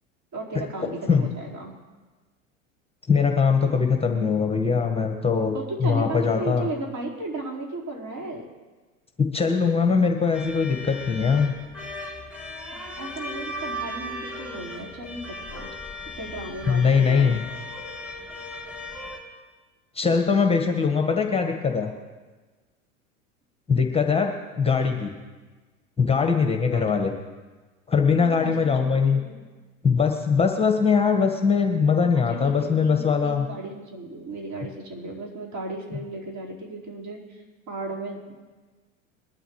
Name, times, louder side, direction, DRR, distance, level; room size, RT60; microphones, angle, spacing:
voice 1, 0.3-1.7 5.5-8.5 12.7-15.7 16.2-17.4 26.7-26.9 28.4-29.4 32.3-38.3, right 2 dB, 45° right, -2 dB, 4.7 m, -35 dB
voice 2, 3.1-5.5 5.8-6.7 9.2-11.5 16.7-17.4 19.9-21.9 23.7-24.3 24.6-25.1 26.0-27.1 27.9-29.2 29.8-33.5, left 5 dB, 15° left, 3 dB, 1.6 m, -21 dB
sound 1, 10.3-19.2, left 1 dB, 5° right, 4.1 m, -37 dB
22.5 x 12.5 x 3.3 m, 1.3 s
hypercardioid pair, 80°, 40 cm